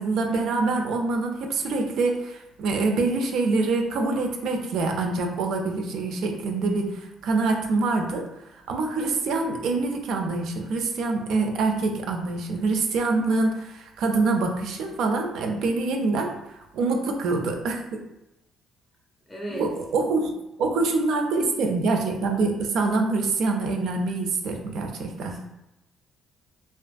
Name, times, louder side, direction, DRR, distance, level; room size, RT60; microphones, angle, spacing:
voice 1, 0.0-8.3 8.7-18.0 19.5-20.3 20.6-25.3, right 3 dB, 70° right, 3 dB, 0.4 m, -25 dB
voice 2, 19.3-19.7 25.2-25.4, right 1 dB, 10° left, -3 dB, 0.5 m, -35 dB
2.4 x 2.4 x 2.4 m, 0.92 s
cardioid pair, 125°, 0 cm